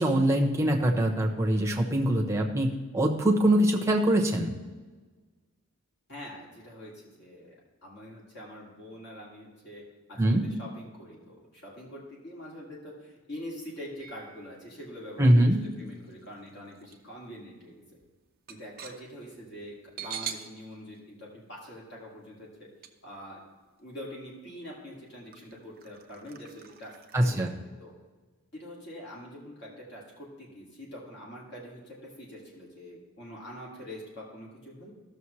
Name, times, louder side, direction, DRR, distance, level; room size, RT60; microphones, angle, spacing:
voice 1, 0.0-4.5 10.2-10.4 15.2-15.6 27.1-27.5, right 1 dB, 10° right, 1 dB, 1.0 m, -23 dB
voice 2, 6.1-7.5 7.8-15.5 15.8-17.8 18.5-22.7 23.0-23.4 23.8-26.9 27.2-27.9 28.5-34.9, equal, 50° left, -4 dB, 2.4 m, -44 dB
sound 1, 14.0-14.7 15.3-17.0 17.3-17.4 17.8-20.5 20.9-21.0 22.8-22.9 23.8-23.9 24.4-24.5 25.3-27.5, right 9 dB, 40° right, 0.6 m, -44 dB
14.5 x 6.6 x 3.2 m, 1.3 s
head